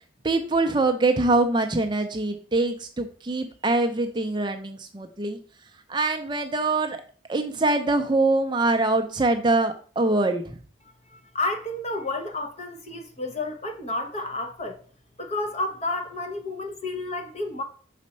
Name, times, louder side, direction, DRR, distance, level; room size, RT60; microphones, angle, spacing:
voice 1, 0.2-5.4 5.9-7.0 7.3-10.6, right 2 dB, 25° right, 0.5 m, -24 dB
voice 2, 11.1-14.8 15.2-17.6, left 2 dB, 35° left, 0.9 m, -31 dB
5.4 x 4.2 x 5.3 m
head